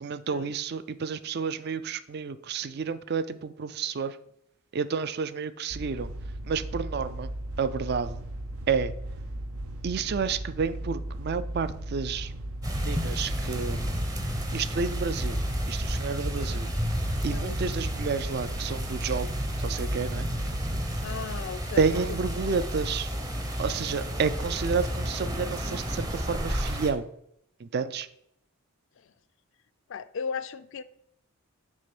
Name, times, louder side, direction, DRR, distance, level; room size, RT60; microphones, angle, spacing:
voice 1, 0.0-4.2 4.7-6.1 6.4-7.3 7.6-8.2 8.7-8.9 9.8-12.3 12.9-14.0 14.5-15.4 15.7-16.7 17.2-20.3 21.8-23.1 23.6-27.1 27.6-28.1, right 5 dB, 45° right, 14 dB, 0.4 m, -30 dB
sound 1, 5.7-22.3, right 1 dB, 80° right, 0.8 m, -37 dB
sound 2, 12.6-26.9, equal, 15° right, 0.7 m, -32 dB
voice 2, 17.3-17.8 21.0-21.9 22.5-22.6 29.9-30.8, left 6 dB, 55° left, 14 dB, 0.4 m, -36 dB
6.3 x 3.5 x 5.9 m, 0.74 s
head